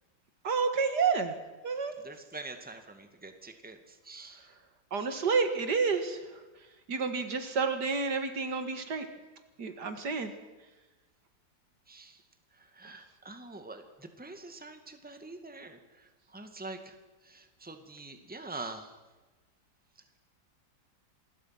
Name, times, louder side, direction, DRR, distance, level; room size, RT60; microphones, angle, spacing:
voice 1, 0.4-1.4 1.6-1.9 4.9-6.2 6.9-9.1 9.6-10.3, right 5 dB, 65° right, 8 dB, 2.3 m, -29 dB
voice 2, 2.0-4.5 11.9-12.2 12.5-17.0 17.2-19.0, right 3 dB, 5° right, 7 dB, 1.8 m, -45 dB
27.0 x 20.5 x 6.0 m, 1.2 s
omnidirectional pair, 1.9 m